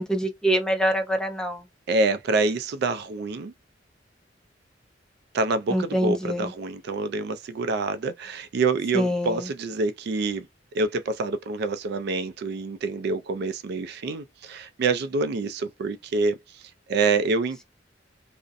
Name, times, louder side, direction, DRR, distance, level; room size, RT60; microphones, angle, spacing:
voice 1, 0.0-1.6 5.7-6.5 8.9-9.4, equal, 5° left, 0.5 m, -25 dB
voice 2, 1.9-3.5 5.3-10.5 10.7-16.6 16.9-17.6, right 3 dB, 60° right, 0.3 m, -26 dB
2.5 x 2.0 x 2.4 m
head